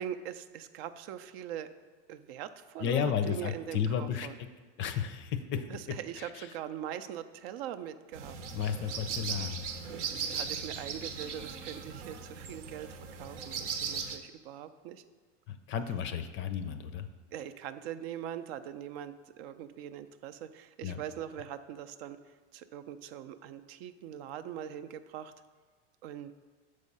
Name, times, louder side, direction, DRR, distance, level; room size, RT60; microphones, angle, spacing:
voice 1, 0.0-1.7 2.1-4.3 5.7-8.4 10.0-15.1 17.3-22.2 22.5-25.3 26.0-26.3, right 10 dB, 60° right, 11 dB, 0.5 m, -42 dB
voice 2, 2.8-4.3 4.8-5.6 6.2-6.5 8.5-9.7 15.5-17.1 20.8-21.0, left 8 dB, 35° left, 10 dB, 0.5 m, -33 dB
sound 1, 8.1-14.2, right 6 dB, 85° right, 0.9 m, -38 dB
6.4 x 4.8 x 5.4 m, 1.4 s
hypercardioid pair, 110°, 35 cm